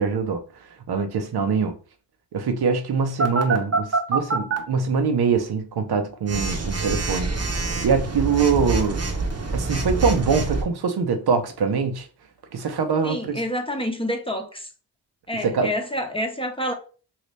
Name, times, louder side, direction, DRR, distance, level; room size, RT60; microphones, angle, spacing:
voice 1, 0.0-1.7 2.3-7.3 7.8-9.1 9.5-12.1 12.5-13.4 15.4-15.7, right 5 dB, 65° right, 0.8 m, -23 dB
Telephone, 3.2-4.6 6.3-10.6, right 3 dB, 35° right, 0.9 m, -25 dB
voice 2, 13.0-14.7 15.3-16.7, equal, 15° left, 0.8 m, -28 dB
2.8 x 2.7 x 3.2 m
cardioid pair, 45°, 41 cm